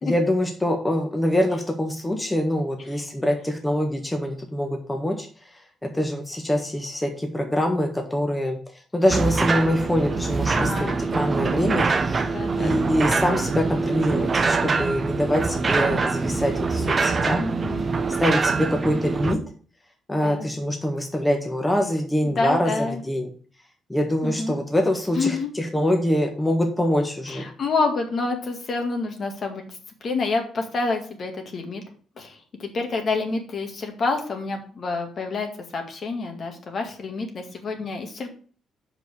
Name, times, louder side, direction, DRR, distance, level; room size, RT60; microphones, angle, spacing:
voice 1, 0.0-5.3 5.5-8.6 8.9-12.3 12.6-17.4 18.2-19.4 20.1-23.3 23.9-27.5, left 1 dB, 10° left, 2 dB, 1.5 m, -24 dB
sound 1, 9.1-19.4, right 4 dB, 35° right, 0.9 m, -24 dB
voice 2, 10.5-11.0 12.2-12.8 17.4-17.9 18.7-18.9 20.1-20.5 22.2-23.0 24.2-24.6 25.2-25.5 27.3-29.6 30.0-31.8 32.2-38.3, left 3 dB, 50° left, 4 dB, 2.0 m, -28 dB
6.2 x 5.3 x 6.4 m, 0.42 s
cardioid pair, 95°, 0 cm